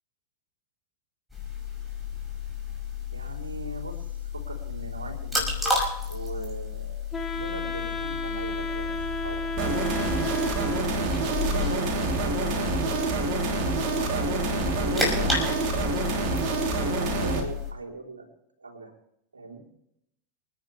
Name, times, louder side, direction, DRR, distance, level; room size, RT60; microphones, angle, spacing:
sound 1, 1.3-17.7, left 4 dB, ahead, 5.8 m, -32 dB
voice 1, 3.1-4.1 4.3-5.7 6.0-7.0 7.3-10.1 11.2-13.1 13.9-16.0 16.8-18.3 18.6-18.9 19.3-19.7, right 3 dB, 75° right, -3 dB, 3.8 m, -40 dB
Wind instrument woodwind instrument, 7.1-11.2, left 1 dB, 15° left, 3.4 m, -33 dB
sound 2, 9.6-17.4, right 3 dB, 40° right, 3.3 m, -27 dB
28.0 x 10.5 x 3.4 m, 0.78 s
figure-of-eight pair, 90°, 0 cm